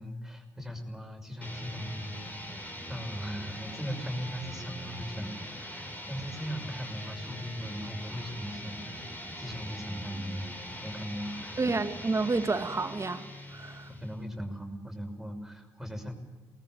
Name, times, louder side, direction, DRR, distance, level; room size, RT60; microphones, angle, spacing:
voice 1, 0.0-10.5 10.8-11.7 13.9-16.1, equal, 5° right, 3 dB, 6.2 m, -39 dB
sound 1, 1.4-14.2, equal, 15° left, 5.9 m, -42 dB
voice 2, 11.6-13.9, right 3 dB, 30° right, 8 dB, 2.4 m, -30 dB
23.5 x 19.5 x 9.1 m, 1.2 s
hypercardioid pair, 45°, 10 cm